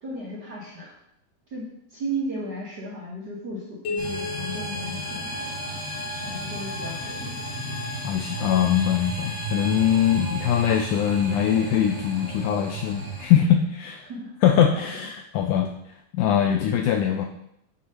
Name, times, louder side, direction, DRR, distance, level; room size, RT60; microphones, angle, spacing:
voice 1, 0.0-0.9 1.5-5.8 6.2-7.4 14.0-14.4 14.7-15.1, right 1 dB, 45° right, -6 dB, 1.3 m, -35 dB
sound 1, 3.8-5.8, left 3 dB, 70° left, 3.2 m, -34 dB
sound 2, 4.0-13.3, right 1 dB, 30° right, 2.6 m, -33 dB
voice 2, 8.0-14.0 14.4-15.7 16.1-17.3, left 9 dB, 90° left, 4 dB, 1.8 m, -22 dB
8.1 x 4.2 x 6.4 m, 0.74 s
omnidirectional pair, 4.2 m